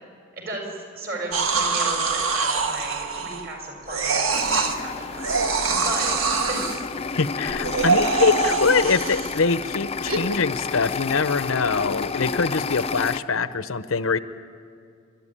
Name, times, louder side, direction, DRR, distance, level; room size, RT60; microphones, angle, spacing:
voice 1, 0.4-6.2 6.5-6.7, right 1 dB, 50° right, 1 dB, 6.2 m, -35 dB
sound 1, 1.3-3.5 3.9-4.8 5.2-6.8 7.5-9.4 10.1-10.2, right 4 dB, 90° right, 1.6 m, -24 dB
sound 2, 4.3-13.2, left 5 dB, 30° left, 0.5 m, -31 dB
voice 2, 7.1-14.2, left 4 dB, 85° left, 13 dB, 0.8 m, -23 dB
29.5 x 13.0 x 10.0 m, 2.3 s
head